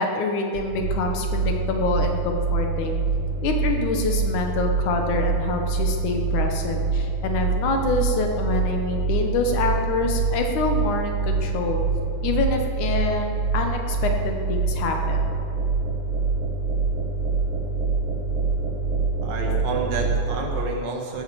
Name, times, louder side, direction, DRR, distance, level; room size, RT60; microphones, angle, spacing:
voice 1, 0.0-3.0 3.4-11.8 12.2-15.2, left 3 dB, 70° left, 3 dB, 2.5 m, -26 dB
sound 1, 0.5-20.4, right 4 dB, 50° right, 1.7 m, -25 dB
voice 2, 19.2-21.2, right 4 dB, 90° right, 1 dB, 3.4 m, -29 dB
17.0 x 8.5 x 6.9 m, 2.4 s
omnidirectional pair, 3.9 m